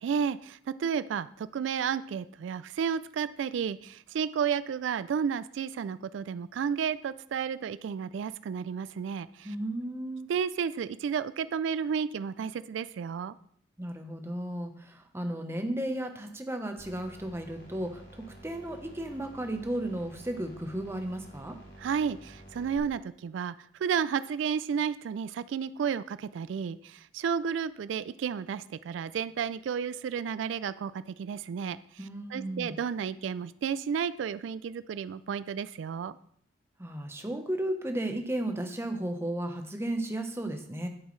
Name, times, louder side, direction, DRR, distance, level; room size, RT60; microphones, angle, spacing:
voice 1, 0.0-9.5 10.3-13.3 21.8-23.5 23.8-31.8 32.3-36.2, right 7 dB, 90° right, 16 dB, 0.3 m, -32 dB
voice 2, 9.4-10.3 13.8-21.6 32.0-32.8 36.8-40.9, right 1 dB, 15° right, 5 dB, 0.9 m, -34 dB
sound 1, 16.8-22.8, right 1 dB, 65° left, 2.4 m, -50 dB
10.5 x 8.1 x 3.2 m, 0.64 s
head